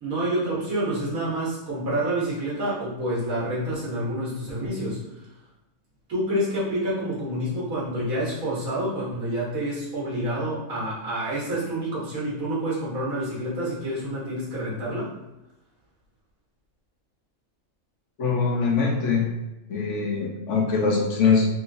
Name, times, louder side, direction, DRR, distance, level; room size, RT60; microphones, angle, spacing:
voice 1, 0.0-5.0 6.1-15.1, right 1 dB, 90° right, -7 dB, 1.8 m, -28 dB
voice 2, 18.2-19.3 19.7-21.5, left 5 dB, 65° left, -1 dB, 1.0 m, -22 dB
3.7 x 3.1 x 2.6 m, 0.96 s
omnidirectional pair, 1.4 m